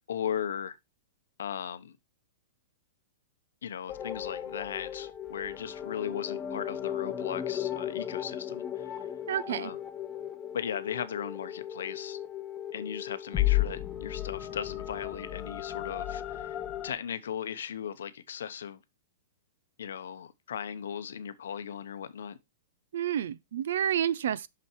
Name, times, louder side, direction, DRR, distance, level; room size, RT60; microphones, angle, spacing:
voice 1, 0.1-0.7 1.4-2.0 3.6-9.1 9.5-9.8 10.5-12.2 12.7-18.8 19.8-22.4, left 8 dB, 85° left, 1.0 m, -37 dB
sound 1, 3.9-16.9, left 12 dB, 15° left, 0.7 m, -35 dB
voice 2, 9.3-9.7 22.9-24.5, right 10 dB, 60° right, 0.5 m, -29 dB
6.2 x 5.9 x 4.5 m
supercardioid pair, 180°, 0 cm